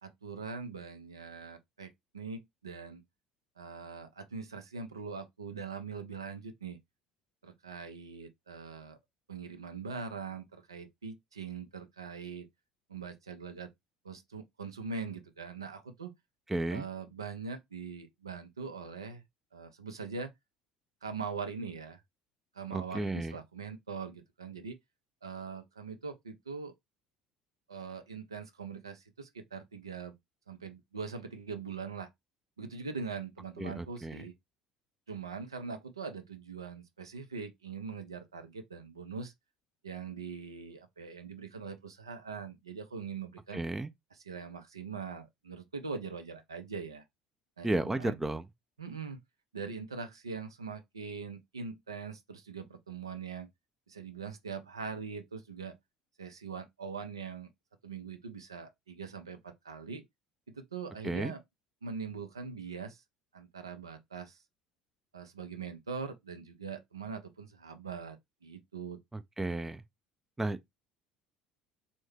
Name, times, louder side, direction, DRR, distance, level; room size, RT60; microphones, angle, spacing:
voice 1, 0.0-3.0 3.6-6.8 7.4-9.0 9.3-12.5 12.9-13.7 14.0-16.1 16.7-19.2 19.5-20.3 21.0-22.0 22.5-24.8 25.2-26.7 27.7-30.2 30.5-32.1 32.6-34.3 35.1-39.3 39.8-43.6 44.3-47.0 47.6-48.2 48.8-49.2 49.5-53.5 53.9-55.8 56.2-57.5 57.8-60.0 60.5-61.4 61.8-63.0 63.3-64.4 65.1-68.2 68.4-69.0, right 5 dB, 80° right, 0.5 m, -42 dB
voice 2, 16.5-16.9 22.7-23.4 33.6-34.2 43.5-43.9 47.6-48.5 61.0-61.3 69.1-69.8 70.4-70.6, right 2 dB, 10° right, 0.4 m, -33 dB
3.5 x 2.1 x 3.2 m
figure-of-eight pair, 60°, 2 cm